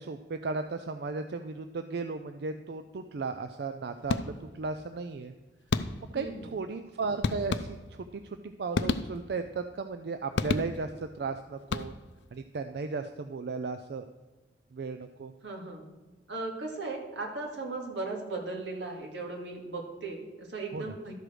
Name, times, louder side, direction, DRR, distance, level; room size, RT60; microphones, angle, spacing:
voice 1, 0.0-5.3 6.1-12.0 12.3-14.1 14.7-15.3 20.7-20.9, right 4 dB, 65° right, 8 dB, 0.4 m, -35 dB
sound 1, 4.1-4.7 5.7-6.3 7.2-8.1 8.7-9.5 10.4-11.1 11.6-12.3, left 4 dB, 75° left, 0.5 m, -32 dB
voice 2, 6.1-6.5 15.4-15.8 16.3-21.1, right 3 dB, 90° right, 0 dB, 2.0 m, -37 dB
12.0 x 5.0 x 6.2 m, 1.3 s
head